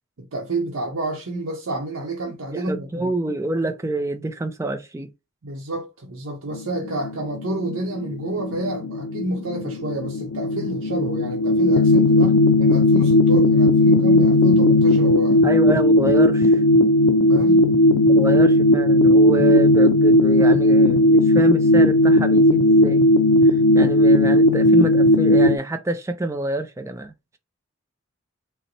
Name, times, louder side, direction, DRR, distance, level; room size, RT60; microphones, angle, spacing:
voice 1, 0.2-3.1 5.4-15.5 17.3-17.7, right 2 dB, 80° right, 0.7 m, -29 dB
voice 2, 2.5-5.1 15.4-16.6 18.0-23.0 23.4-27.4, right 2 dB, 15° right, 0.3 m, -27 dB
sound 1, 6.5-25.6, left 1 dB, 80° left, 0.4 m, -16 dB
3.9 x 2.1 x 2.8 m
head